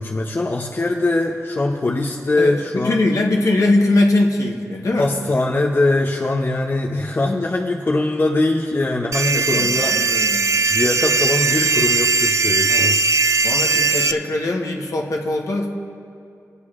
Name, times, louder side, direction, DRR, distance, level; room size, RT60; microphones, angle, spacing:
voice 1, 0.0-3.0 5.0-9.9 10.7-13.0, left 2 dB, 35° left, 0 dB, 0.6 m, -21 dB
voice 2, 2.4-5.1 9.2-10.4 12.7-13.0 13.4-15.7, left 2 dB, 65° left, 1 dB, 1.1 m, -21 dB
sound 1, 9.1-14.1, right 4 dB, 60° right, 0.3 m, -19 dB
22.0 x 8.1 x 2.4 m, 2.6 s
wide cardioid pair, 80°, 6 cm